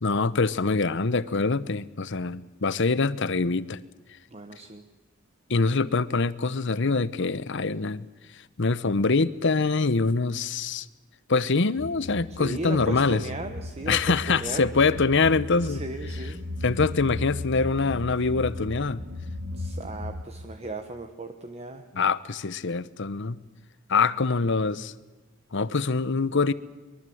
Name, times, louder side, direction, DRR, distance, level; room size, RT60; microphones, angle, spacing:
voice 1, 0.0-3.8 5.5-8.0 8.6-10.9 11.3-13.2 13.9-15.8 16.6-19.0 21.9-23.4 23.9-24.9 25.5-26.5, left 4 dB, 60° left, 0.9 m, -24 dB
voice 2, 4.3-4.8 12.3-14.7 15.6-16.4 19.5-21.8, right 2 dB, 30° right, 1.2 m, -36 dB
sound 1, 11.8-20.2, left 2 dB, 70° right, 3.8 m, -36 dB
23.0 x 23.0 x 7.9 m
head